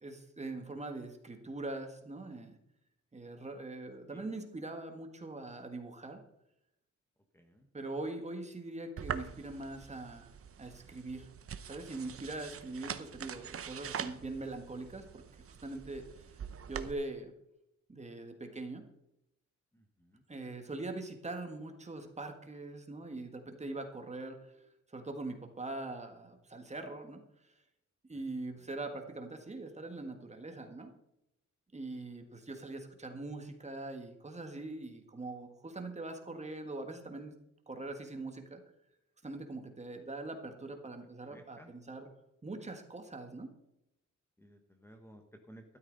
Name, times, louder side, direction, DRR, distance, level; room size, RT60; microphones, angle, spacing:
voice 1, 0.0-2.6 3.1-6.2 7.7-10.3 10.6-11.3 11.7-15.2 15.6-16.3 16.7-17.3 17.9-18.9 20.3-24.5 24.9-27.2 28.1-30.9 31.7-37.4 37.7-38.6 39.2-42.1 42.4-43.5, right 2 dB, 20° right, 5 dB, 1.7 m, -42 dB
voice 2, 7.3-7.7 19.7-20.2 28.1-28.2 28.6-28.7 41.2-41.7 44.4-45.2 45.5-45.6, right 1 dB, 10° left, 4 dB, 1.3 m, -57 dB
sound 1, 9.0-16.9, right 8 dB, 45° right, 0.8 m, -44 dB
13.0 x 12.5 x 4.0 m, 0.83 s
wide cardioid pair, 135°, 30 cm